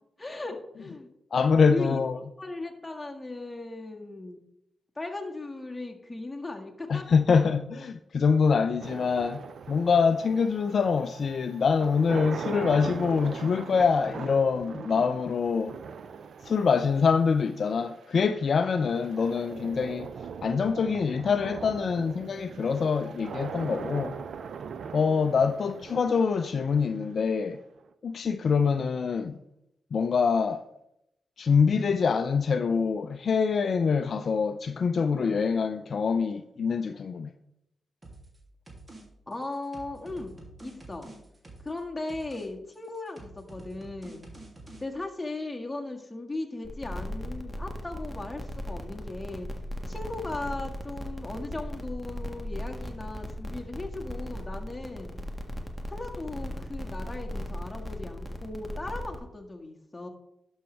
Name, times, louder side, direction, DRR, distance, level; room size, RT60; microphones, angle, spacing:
voice 1, 0.2-1.1 1.7-2.0 2.4-4.4 5.0-7.0 7.3-7.5 39.3-41.1 41.6-44.3 44.8-49.5 49.9-55.2 55.9-60.1, left 2 dB, 20° left, 1.8 m, -37 dB
voice 2, 1.3-2.2 6.9-9.4 9.7-15.8 16.4-20.1 20.4-24.2 24.9-27.6 28.0-29.3 29.9-30.6 31.4-37.3, left 5 dB, 60° left, 0.4 m, -25 dB
sound 1, 8.8-27.8, right 6 dB, 70° right, 0.5 m, -41 dB
sound 2, 38.0-38.4 38.7-39.0 39.3-41.8 42.1-42.5 42.7-44.8, right 2 dB, 35° right, 2.6 m, -48 dB
sound 3, 46.6-59.2, equal, 5° right, 1.6 m, -37 dB
11.5 x 6.3 x 3.3 m
supercardioid pair, 50°, 0 cm